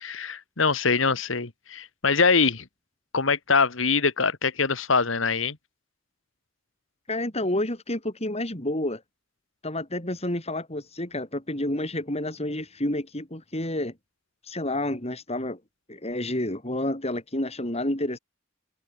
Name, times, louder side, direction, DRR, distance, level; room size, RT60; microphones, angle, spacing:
voice 1, 0.0-2.7 3.1-5.6, left 4 dB, 75° left, 1.8 m, -23 dB
voice 2, 7.1-9.0 9.6-13.9 14.5-15.6 15.9-18.2, left 1 dB, 30° left, 5.7 m, -29 dB
head